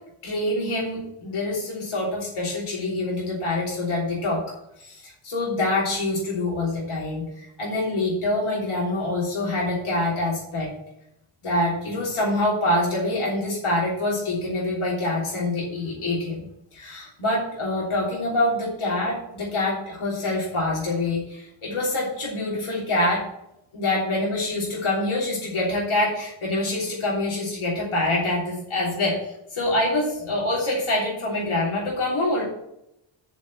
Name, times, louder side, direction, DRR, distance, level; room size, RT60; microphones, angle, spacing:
voice 1, 0.2-4.4 4.8-10.7 11.4-16.4 16.7-23.2 23.7-32.4, left 2 dB, 90° left, -4 dB, 3.4 m, -25 dB
7.7 x 6.3 x 7.4 m, 0.81 s
wide cardioid pair, 145°, 48 cm